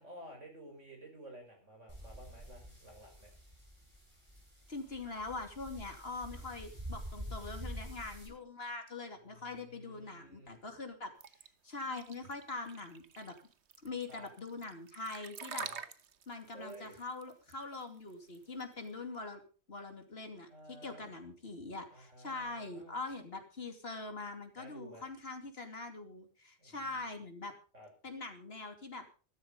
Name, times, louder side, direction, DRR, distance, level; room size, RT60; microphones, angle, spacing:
voice 1, 0.0-3.3 6.5-6.6 9.3-10.6 14.1-14.3 15.6-15.8 16.5-17.0 20.5-21.1 21.9-23.0 24.6-25.1 26.6-26.8 27.7-27.9, right 1 dB, 90° right, 3 dB, 5.8 m, -52 dB
sound 1, 1.9-8.3, equal, 25° right, 7.8 m, -47 dB
voice 2, 4.7-11.4 11.6-13.4 13.8-15.7 16.3-19.4 19.7-27.5 28.0-29.1, left 3 dB, 55° left, 5 dB, 3.0 m, -43 dB
sound 2, 11.2-18.9, right 7 dB, 70° right, 1.3 m, -48 dB
14.0 x 13.0 x 5.4 m, 0.38 s
omnidirectional pair, 1.2 m